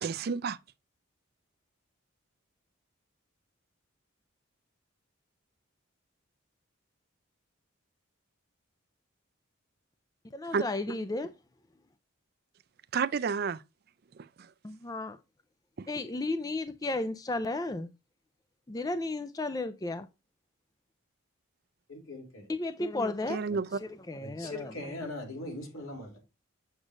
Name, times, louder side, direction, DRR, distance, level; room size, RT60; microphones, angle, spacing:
voice 1, 0.0-0.6 10.5-10.6 12.9-13.6 14.2-14.5 15.8-15.9 23.3-23.8, right 5 dB, 50° right, 0.4 m, -31 dB
voice 2, 10.3-11.3 14.6-15.2 15.9-17.9 18.7-20.1 22.5-23.6 24.1-24.7, left 2 dB, 15° left, 0.4 m, -33 dB
voice 3, 21.9-22.5 24.2-26.2, left 2 dB, 80° left, 3.2 m, -40 dB
8.0 x 7.4 x 2.5 m
head